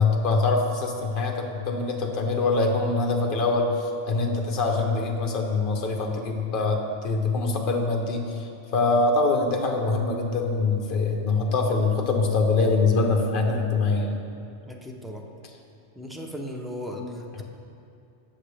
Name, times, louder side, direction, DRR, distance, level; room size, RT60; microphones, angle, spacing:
voice 1, 0.0-8.2 8.7-14.1, left 3 dB, 50° left, 2 dB, 1.1 m, -24 dB
voice 2, 14.6-15.3 16.0-17.4, left 1 dB, ahead, 1 dB, 0.5 m, -37 dB
15.0 x 6.3 x 3.4 m, 2.7 s
omnidirectional pair, 1.1 m